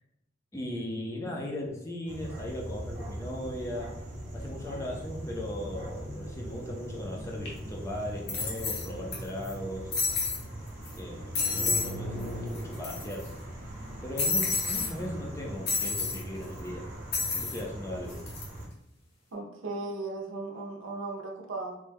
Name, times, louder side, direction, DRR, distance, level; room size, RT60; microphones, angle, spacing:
voice 1, 0.5-3.9 4.3-9.9 10.9-13.2 14.0-16.8 17.3-18.2, left 1 dB, 15° left, -2 dB, 0.4 m, -37 dB
sound 1, 2.1-18.7, right 1 dB, 40° right, 0.8 m, -40 dB
sound 2, 7.5-7.6 8.3-9.2 9.4-9.5 9.9-10.4 10.9-11.0 11.3-11.9 12.2-12.3 12.5-13.3 14.2-14.9 15.7-16.2 17.1-17.6 18.1-18.4, left 4 dB, 55° left, 0.8 m, -30 dB
voice 2, 19.3-21.8, right 3 dB, 80° right, 0 dB, 0.6 m, -36 dB
3.1 x 2.1 x 3.4 m, 0.85 s
head